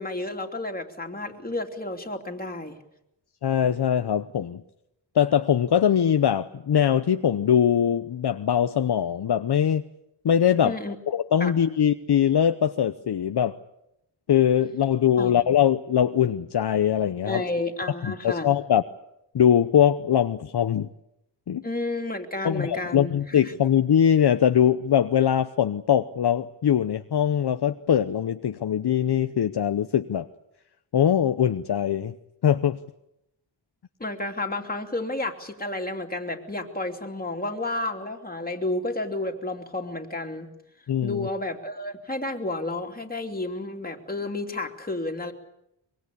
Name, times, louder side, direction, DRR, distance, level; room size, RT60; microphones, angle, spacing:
voice 1, 0.0-2.8 10.6-11.0 11.4-11.5 15.2-15.3 17.2-18.5 21.6-23.5 34.0-40.5 41.0-45.3, left 2 dB, 20° left, 3 dB, 3.0 m, -31 dB
voice 2, 3.4-4.6 5.1-9.8 10.2-10.8 11.1-13.6 14.3-17.4 18.0-18.8 19.3-20.9 21.5-21.6 22.4-30.3 30.9-32.1 32.4-32.8 40.9-41.3, left 9 dB, 55° left, 9 dB, 0.9 m, -22 dB
24.5 x 22.5 x 8.5 m, 0.83 s
wide cardioid pair, 95°, 47 cm